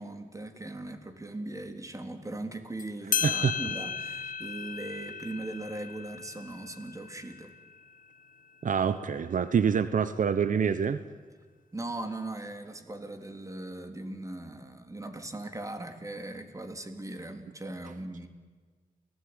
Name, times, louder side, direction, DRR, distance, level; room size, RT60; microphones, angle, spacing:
voice 1, 0.0-7.5 11.7-18.3, right 2 dB, 25° right, 7 dB, 3.4 m, -39 dB
sound 1, 2.8-2.9 3.1-8.2, left 7 dB, 80° left, 1.3 m, -35 dB
voice 2, 3.2-3.6 8.6-11.0, right 7 dB, 70° right, 13 dB, 1.0 m, -26 dB
29.0 x 18.0 x 9.7 m, 1.5 s
cardioid pair, 80°, 14 cm